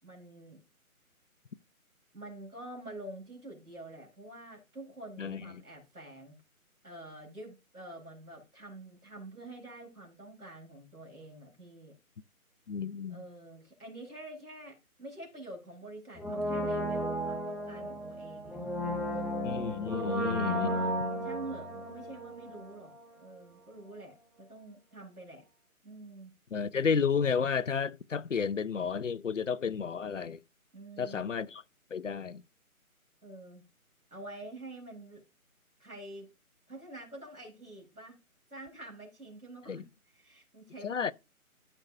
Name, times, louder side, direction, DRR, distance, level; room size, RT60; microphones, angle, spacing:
voice 1, 0.0-0.6 2.1-6.4 6.8-11.9 13.1-19.3 20.1-20.9 21.2-22.9 23.2-25.4 25.8-26.3 30.7-31.3 33.2-33.6 34.1-35.2 35.8-36.3 36.7-38.2 38.5-41.1, right 2 dB, 90° right, 3.9 m, -47 dB
voice 2, 12.7-13.2 19.4-20.7 26.5-30.4 31.0-31.6 31.9-32.4 39.7-39.8 40.8-41.1, left 6 dB, 60° left, 0.5 m, -31 dB
Brass instrument, 16.2-23.0 23.3-23.4, equal, ahead, 0.5 m, -34 dB
13.0 x 5.5 x 2.6 m
figure-of-eight pair, 150°, 44 cm